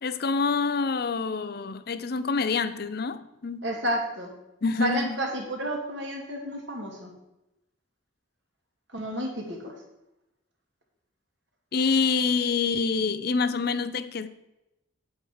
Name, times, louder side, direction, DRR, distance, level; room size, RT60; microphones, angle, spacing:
voice 1, 0.0-3.7 4.6-5.2 11.7-14.3, left 4 dB, 50° left, 0.5 m, -26 dB
voice 2, 3.6-4.3 4.8-7.1 8.9-9.7, right 1 dB, 60° right, 2.3 m, -31 dB
8.7 x 8.0 x 4.8 m
head